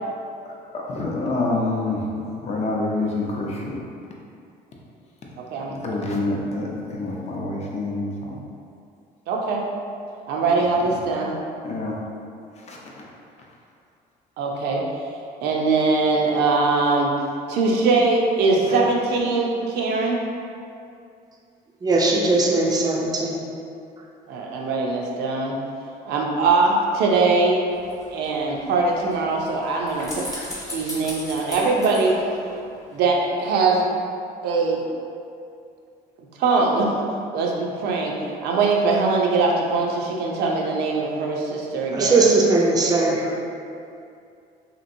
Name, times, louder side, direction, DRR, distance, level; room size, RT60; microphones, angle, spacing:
voice 1, 0.4-3.8 5.6-8.4 10.8-11.0 11.6-12.0 12.6-13.0 18.7-18.8, left 2 dB, 40° left, -2 dB, 0.5 m, -27 dB
voice 2, 9.3-9.6 10.3-11.3 14.4-14.8 15.4-17.1 17.5-20.2 24.3-25.5 26.0-27.6 28.1-30.3 30.7-32.2 32.9-33.8 34.4-34.8 36.4-36.9 37.3-42.3, right 3 dB, 80° right, -1 dB, 0.5 m, -21 dB
voice 3, 21.8-23.4 41.9-43.4, right 3 dB, 25° right, -1 dB, 0.4 m, -19 dB
sound 1, 27.7-33.0 33.3-33.4, left 1 dB, 20° left, 0.9 m, -38 dB
2.9 x 2.6 x 2.6 m, 2.5 s
cardioid pair, 110°, 17 cm